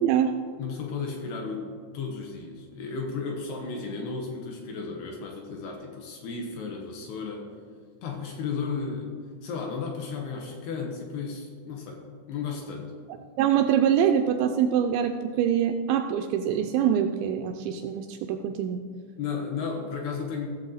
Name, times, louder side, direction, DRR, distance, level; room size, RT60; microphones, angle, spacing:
voice 1, 0.0-0.4 13.4-18.8, right 9 dB, 85° right, 5 dB, 2.5 m, -24 dB
voice 2, 0.6-1.7 1.9-7.5 8.0-9.1 9.4-12.0 12.3-12.9 19.2-20.5, left 5 dB, 75° left, 1 dB, 2.6 m, -34 dB
15.5 x 7.2 x 3.9 m, 2.1 s
omnidirectional pair, 5.4 m